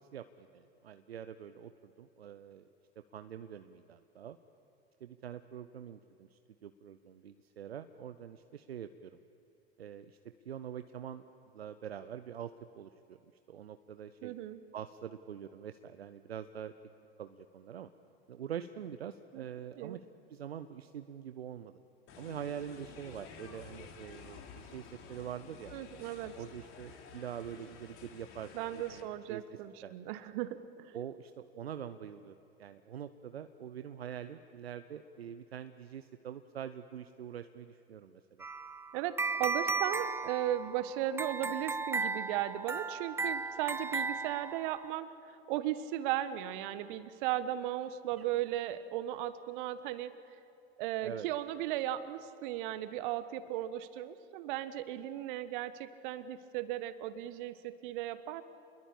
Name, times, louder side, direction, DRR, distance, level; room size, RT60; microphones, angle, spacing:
voice 1, 0.1-2.7 3.1-4.4 5.0-9.2 9.8-11.3 11.5-13.2 13.5-14.3 14.7-16.7 17.2-17.9 18.3-20.0 20.3-21.8 22.2-25.7 26.3-29.9 30.9-38.2 48.2-48.3 51.0-51.3, right 9 dB, 75° right, 11 dB, 0.8 m, -45 dB
voice 2, 14.2-14.6 19.3-19.4 19.7-20.0 25.7-26.3 28.5-31.0 38.9-50.1 50.8-58.4, right 13 dB, 55° right, 14 dB, 1.4 m, -36 dB
sound 1, 22.1-29.0, left 6 dB, 45° left, 3.5 m, -52 dB
sound 2, 38.4-44.9, right 4 dB, 10° right, 0.6 m, -36 dB
29.0 x 21.5 x 8.7 m, 2.7 s
figure-of-eight pair, 80°, 31 cm